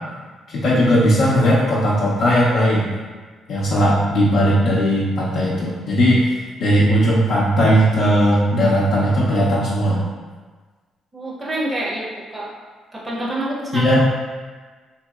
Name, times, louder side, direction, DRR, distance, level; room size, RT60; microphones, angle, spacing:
voice 1, 0.5-2.9 3.5-6.2 6.6-10.0 13.7-14.0, equal, 70° left, -8 dB, 0.5 m, -17 dB
voice 2, 11.1-12.5 12.9-14.0, right 1 dB, 25° right, -4 dB, 0.6 m, -27 dB
2.8 x 2.7 x 2.3 m, 1.4 s
cardioid pair, 90°, 0 cm